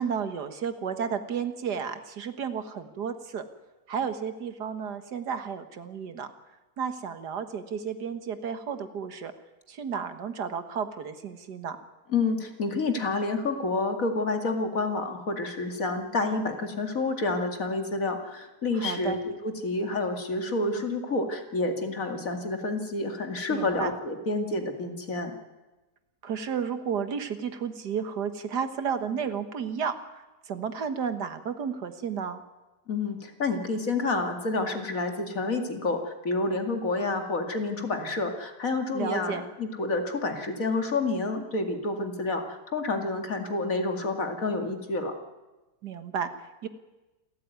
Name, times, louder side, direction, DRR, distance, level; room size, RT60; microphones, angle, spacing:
voice 1, 0.0-3.4 3.9-6.3 6.8-9.3 9.7-11.8 18.7-19.2 23.5-23.9 26.2-32.4 38.9-39.4 45.8-46.7, right 7 dB, 80° right, 10 dB, 2.0 m, -32 dB
voice 2, 12.1-25.4 32.9-45.1, left 3 dB, 55° left, 5 dB, 2.8 m, -29 dB
28.0 x 14.0 x 9.4 m, 1.1 s
omnidirectional pair, 1.8 m